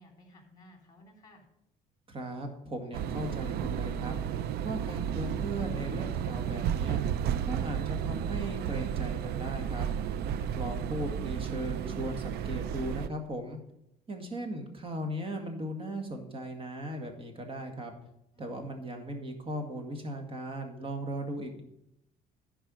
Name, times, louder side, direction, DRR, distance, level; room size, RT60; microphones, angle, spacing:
voice 1, 0.0-1.5 10.3-10.8 18.3-18.7, equal, 25° left, 0 dB, 3.6 m, -56 dB
voice 2, 2.1-4.1 4.6-7.0 7.4-9.9 10.5-13.6 14.1-17.9 18.4-21.6, right 1 dB, 35° right, 4 dB, 2.0 m, -37 dB
sound 1, 2.9-13.1, right 9 dB, 70° right, 0.5 m, -32 dB
11.0 x 4.8 x 6.3 m, 0.80 s
cardioid pair, 110°, 17 cm